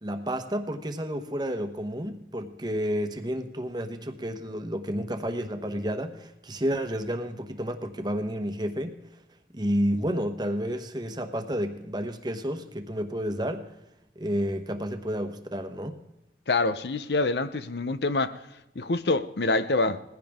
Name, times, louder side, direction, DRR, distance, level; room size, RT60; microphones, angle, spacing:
voice 1, 0.0-9.0 9.5-13.7 14.2-16.0, equal, 25° right, 1.1 m, -30 dB
voice 2, 16.5-18.4 18.8-20.0, left 3 dB, 70° left, 0.8 m, -26 dB
19.5 x 15.5 x 3.6 m
head